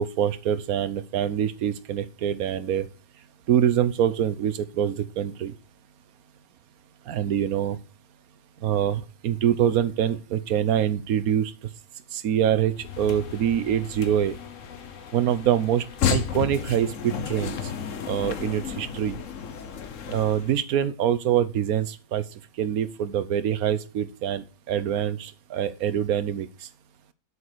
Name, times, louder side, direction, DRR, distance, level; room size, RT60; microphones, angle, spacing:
voice 1, 0.0-2.9 3.5-5.5 7.1-7.8 8.6-11.5 12.1-14.4 15.1-15.8 16.1-17.6 18.1-19.2 20.1-22.2 22.6-26.5, right 10 dB, 75° right, 15 dB, 1.3 m, -25 dB
sound 1, 12.7-20.6, left 7 dB, 60° left, 1.3 m, -33 dB
8.7 x 7.0 x 6.7 m, 0.36 s
omnidirectional pair, 1.6 m